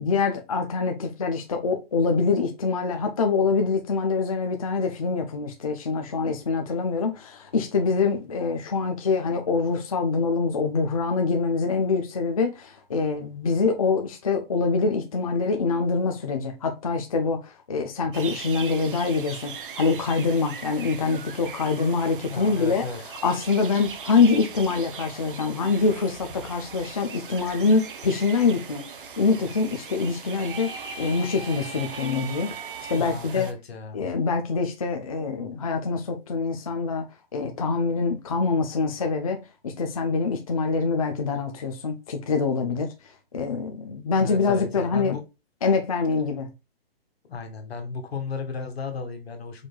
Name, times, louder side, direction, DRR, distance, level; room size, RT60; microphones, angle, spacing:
voice 1, 0.0-22.9 23.2-30.7 31.0-32.5 32.9-33.5 33.9-37.1 37.3-42.9 43.3-45.2 45.6-46.5, left 4 dB, 35° left, 0.5 m, -25 dB
sound 1, 18.1-33.5, right 6 dB, 60° right, 0.8 m, -40 dB
voice 2, 22.3-23.0 33.0-34.0 44.2-45.2 47.2-49.7, left 4 dB, 80° left, 1.6 m, -34 dB
sound 2, 30.3-33.1, right 3 dB, 75° right, 1.4 m, -39 dB
4.7 x 4.0 x 2.2 m
hypercardioid pair, 180°, 30 cm